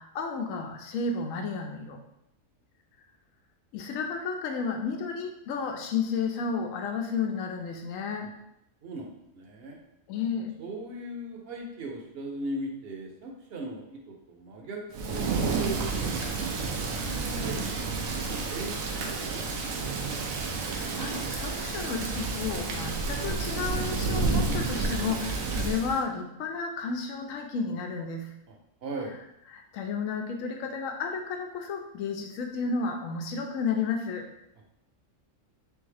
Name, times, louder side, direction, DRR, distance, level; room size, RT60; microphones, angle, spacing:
voice 1, 0.0-2.0 3.7-8.3 10.1-10.6 20.7-28.3 29.5-34.3, left 5 dB, 90° left, 3 dB, 1.0 m, -32 dB
voice 2, 8.8-9.8 10.6-16.3 16.8-17.8 18.1-19.9 28.8-29.1, right 1 dB, 55° right, 1 dB, 0.9 m, -39 dB
Thunder / Rain, 14.9-26.0, right 4 dB, 90° right, 1.0 m, -30 dB
3.5 x 3.4 x 3.3 m, 0.81 s
omnidirectional pair, 1.4 m